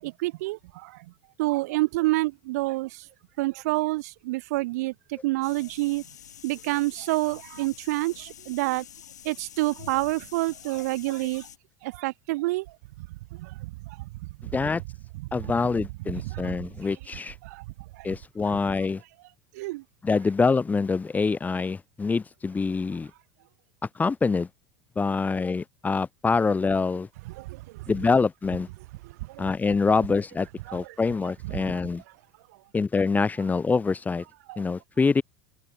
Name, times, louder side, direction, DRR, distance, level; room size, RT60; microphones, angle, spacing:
voice 1, 0.0-0.9 1.4-2.9 3.4-4.9 5.2-6.0 6.4-8.8 9.2-11.5 11.8-12.7 13.4-13.7 14.0-14.1 16.3-16.5 17.4-17.6 19.5-19.8 27.4-27.6 29.3-29.4 30.7-30.8 31.6-31.8 34.5-34.6, right 20 dB, 70° right, 0.9 m, -28 dB
sound 1, 5.4-11.6, left 10 dB, 85° left, 2.9 m, -47 dB
voice 2, 15.3-17.3 18.0-19.0 20.0-23.1 23.9-24.5 25.0-27.1 27.9-28.7 29.4-32.0 32.7-34.2 34.6-35.2, left 4 dB, 20° left, 1.1 m, -25 dB
hypercardioid pair, 85°, 9 cm